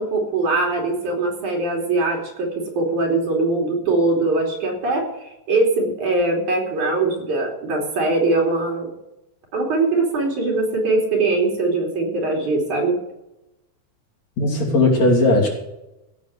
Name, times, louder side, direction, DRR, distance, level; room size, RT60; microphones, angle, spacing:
voice 1, 0.0-5.1 5.5-8.9 9.5-13.0, right 2 dB, 80° right, 0 dB, 4.5 m, -21 dB
voice 2, 14.4-15.5, left 2 dB, 60° left, -2 dB, 4.3 m, -17 dB
15.5 x 6.6 x 8.1 m, 0.94 s
omnidirectional pair, 3.5 m